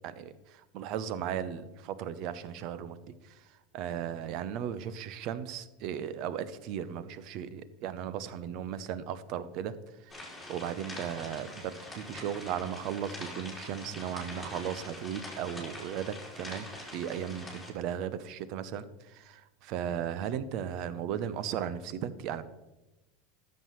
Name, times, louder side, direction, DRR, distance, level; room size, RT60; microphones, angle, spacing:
voice 1, 0.0-3.0 3.7-9.7 10.5-22.4, right 9 dB, 55° right, 14 dB, 0.7 m, -36 dB
sound 1, 10.1-17.7, left 1 dB, 5° left, 3.7 m, -44 dB
13.0 x 7.4 x 3.1 m, 1.1 s
supercardioid pair, 110°, 0 cm